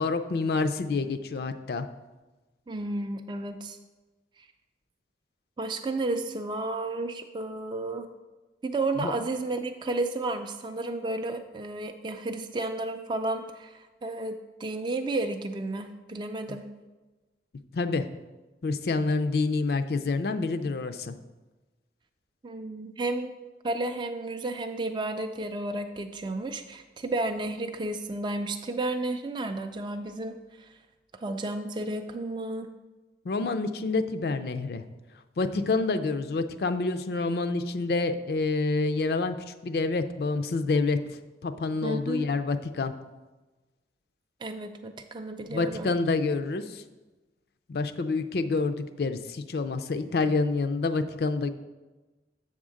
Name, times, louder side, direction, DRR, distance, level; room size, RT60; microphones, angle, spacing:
voice 1, 0.0-1.9 9.0-9.1 17.7-18.1 18.6-21.2 33.3-34.8 35.4-41.0 41.4-42.9 45.5-46.8 47.7-51.5, left 3 dB, 60° left, 9 dB, 0.4 m, -27 dB
voice 2, 2.7-3.8 5.6-8.1 8.6-14.3 14.6-16.7 22.4-23.3 23.6-30.7 31.2-32.7 35.7-35.9 41.8-42.3 44.4-45.9, right 2 dB, 25° right, 6 dB, 0.3 m, -32 dB
7.6 x 3.6 x 6.3 m, 1.2 s
head